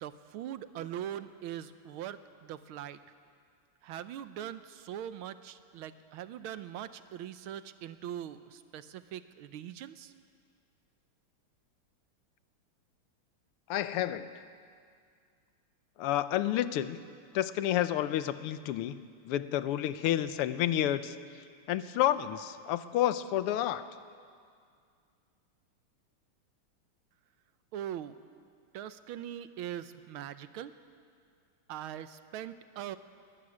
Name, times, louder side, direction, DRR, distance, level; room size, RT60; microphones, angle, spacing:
voice 1, 0.0-3.0 3.8-10.1 27.7-28.2 28.7-30.7 31.7-33.0, right 10 dB, 75° right, 12 dB, 1.5 m, -41 dB
voice 2, 13.7-14.3 16.0-17.0 17.3-21.1 21.7-23.9, left 12 dB, 85° left, 13 dB, 1.7 m, -30 dB
22.0 x 13.0 x 9.8 m, 2.2 s
omnidirectional pair, 2.4 m